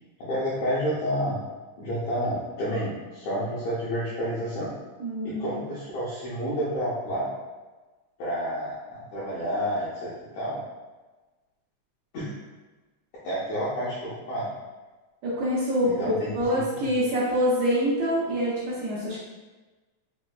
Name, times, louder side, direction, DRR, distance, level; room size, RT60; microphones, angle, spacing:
voice 1, 0.2-1.4 1.8-4.7 5.2-7.3 8.2-10.6 12.1-12.3 13.2-14.5 15.8-16.3, equal, 75° left, -10 dB, 1.4 m, -29 dB
voice 2, 5.0-5.6 15.2-19.2, equal, 75° right, -7 dB, 1.7 m, -26 dB
5.0 x 2.0 x 2.2 m, 1.2 s
omnidirectional pair, 3.6 m